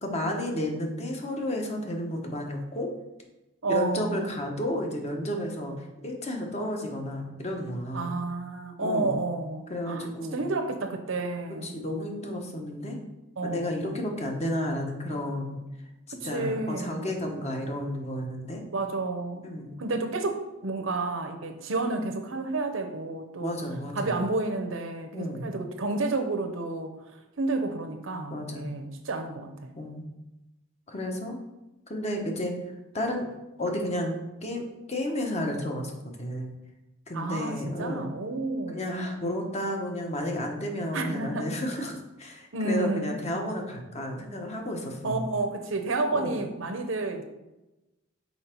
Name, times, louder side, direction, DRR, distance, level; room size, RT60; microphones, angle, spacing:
voice 1, 0.0-2.9 3.7-8.2 8.8-9.1 9.7-10.4 11.6-13.0 13.4-15.6 16.2-18.6 19.4-19.8 23.4-24.1 25.1-25.5 28.3-28.7 29.8-30.0 30.9-31.4 31.9-32.5 32.9-33.3 33.6-34.1 34.4-36.5 37.1-38.1 38.7-45.3 46.1-46.3, left 1 dB, 35° left, 2 dB, 1.0 m, -32 dB
voice 2, 3.6-4.2 7.9-11.8 13.4-13.9 16.1-17.0 18.7-19.5 19.8-23.5 24.0-29.8 37.1-38.9 40.9-41.5 41.8-41.9 42.5-43.1 45.0-47.2, right 3 dB, 70° right, 6 dB, 0.8 m, -31 dB
5.6 x 4.3 x 4.5 m, 0.98 s
head